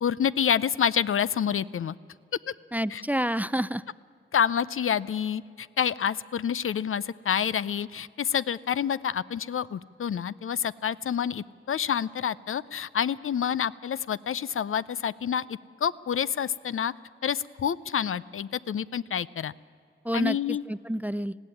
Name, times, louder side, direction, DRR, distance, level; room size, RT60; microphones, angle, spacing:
voice 1, 0.0-2.0 2.9-3.0 4.3-16.9 17.2-19.5 20.1-20.6, left 8 dB, 75° left, 17 dB, 0.5 m, -28 dB
voice 2, 2.7-3.8 20.0-21.4, right 1 dB, 5° right, 18 dB, 0.4 m, -29 dB
19.5 x 15.0 x 9.7 m, 2.4 s
wide cardioid pair, 65°, 21 cm